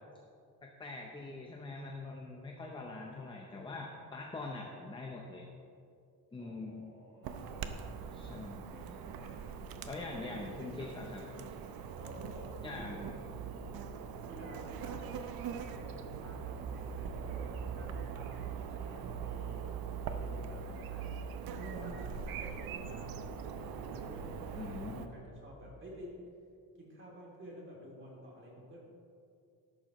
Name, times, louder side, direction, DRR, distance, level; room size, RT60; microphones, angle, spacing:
voice 1, 0.6-5.5 6.3-6.9 8.1-8.8 9.8-11.2 12.6-13.0 24.6-25.1, left 3 dB, 15° left, 0 dB, 0.7 m, -43 dB
voice 2, 6.4-8.3 8.7-9.9 10.1-11.5 12.0-13.3 14.3-19.7 20.0-23.1 23.4-26.1 26.7-28.9, equal, 30° right, -3 dB, 2.8 m, -51 dB
Chirp tweet / Buzz, 7.2-25.1, right 6 dB, 70° right, 0.8 m, -42 dB
13.5 x 11.5 x 3.1 m, 2.5 s
cardioid pair, 175°, 37 cm